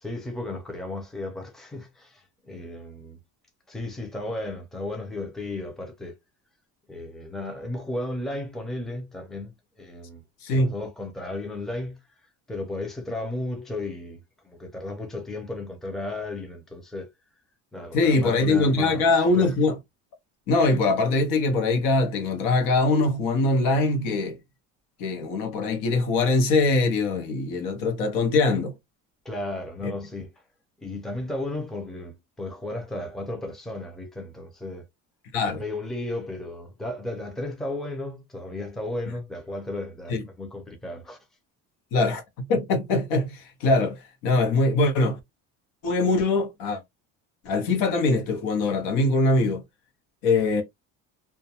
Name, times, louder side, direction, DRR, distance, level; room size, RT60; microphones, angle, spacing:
voice 1, 0.0-3.2 3.7-6.2 6.9-10.2 10.5-12.0 12.5-17.1 17.7-19.5 29.2-30.3 30.8-34.8 35.5-41.2, left 2 dB, ahead, 0.5 m, -34 dB
voice 2, 10.4-10.7 17.9-19.8 20.5-24.4 25.0-28.7 29.8-29.9 35.3-35.6 40.1-40.2 41.9-45.2 45.8-46.8 47.4-49.6 50.2-50.6, left 3 dB, 85° left, 1.0 m, -22 dB
2.2 x 2.2 x 2.7 m
cardioid pair, 140°, 33 cm